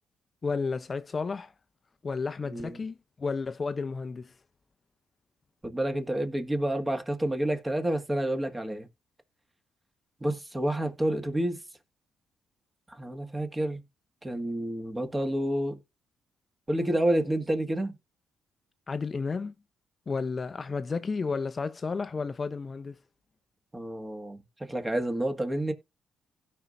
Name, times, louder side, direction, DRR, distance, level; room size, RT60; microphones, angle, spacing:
voice 1, 0.4-1.5 2.0-4.3 18.9-19.5 20.1-23.0, left 4 dB, 35° left, 0.6 m, -32 dB
voice 2, 2.5-2.8 5.6-8.9 10.2-11.6 12.9-13.8 14.2-15.8 16.7-17.9 23.7-25.7, right 1 dB, 15° right, 1.8 m, -29 dB
16.0 x 5.5 x 2.6 m
cardioid pair, 90°, 0 cm